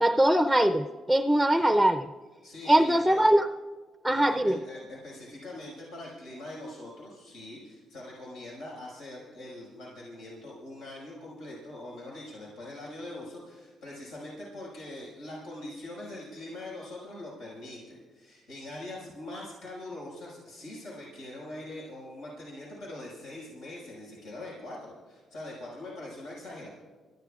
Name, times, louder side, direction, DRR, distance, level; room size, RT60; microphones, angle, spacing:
voice 1, 0.0-2.1 2.7-3.5 4.0-4.6, right 1 dB, ahead, 7 dB, 0.5 m, -22 dB
voice 2, 2.4-3.2 4.3-26.7, left 1 dB, 90° left, -6 dB, 5.5 m, -43 dB
29.0 x 14.5 x 2.4 m, 1.4 s
cardioid pair, 90°, 0 cm